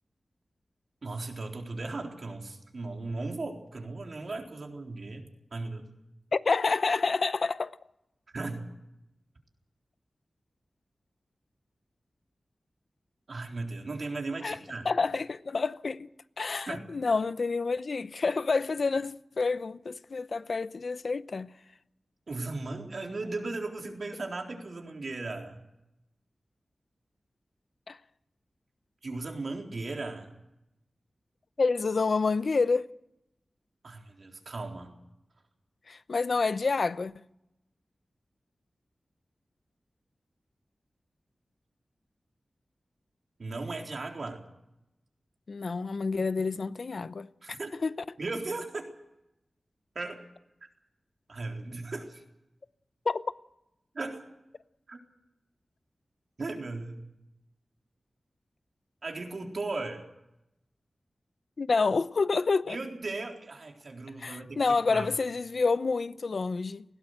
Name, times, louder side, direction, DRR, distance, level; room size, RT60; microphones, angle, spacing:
voice 1, 1.0-5.2 5.5-5.9 8.3-8.6 13.3-14.9 16.7-16.8 22.3-25.6 29.0-30.3 33.8-34.9 43.4-44.4 47.4-47.7 48.2-48.9 50.0-50.2 51.3-52.2 53.9-54.3 54.9-55.0 56.4-57.0 59.0-60.0 62.7-64.6 64.9-65.1, right 3 dB, 65° right, 3.8 m, -37 dB
voice 2, 6.3-7.8 14.4-14.6 14.8-16.1 16.4-21.5 27.9-28.0 31.6-32.9 35.9-37.1 45.5-47.9 53.1-53.2 61.6-62.8 64.2-66.8, left 4 dB, 65° left, 0.7 m, -28 dB
20.5 x 17.5 x 7.9 m
wide cardioid pair, 80°, 0 cm